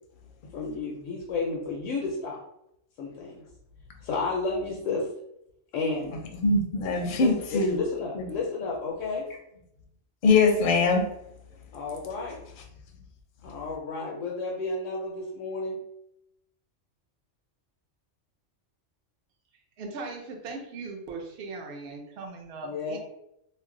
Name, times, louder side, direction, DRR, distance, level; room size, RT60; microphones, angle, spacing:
voice 1, 0.5-2.4 3.0-3.4 4.0-5.1 5.7-6.1 6.8-9.2 11.7-12.4 13.4-15.8 22.6-23.0, left 3 dB, 85° left, -2 dB, 1.0 m, -32 dB
voice 2, 6.4-7.8 8.2-8.3 10.2-11.1, left 3 dB, 55° left, 3 dB, 0.6 m, -22 dB
voice 3, 19.8-23.0, right 3 dB, 60° right, 1 dB, 0.8 m, -39 dB
2.5 x 2.0 x 3.6 m, 0.79 s
omnidirectional pair, 1.3 m